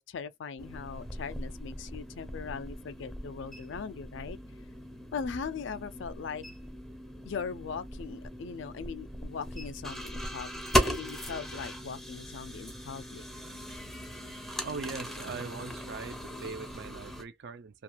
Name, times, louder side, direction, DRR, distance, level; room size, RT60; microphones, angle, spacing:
voice 1, 0.0-4.4 5.1-6.4 7.3-10.5 10.8-13.2, left 6 dB, 65° left, 0.4 m, -39 dB
sound 1, 0.6-17.2, equal, ahead, 0.5 m, -37 dB
voice 2, 14.6-17.8, right 4 dB, 55° right, 0.4 m, -41 dB
2.4 x 2.3 x 2.9 m
head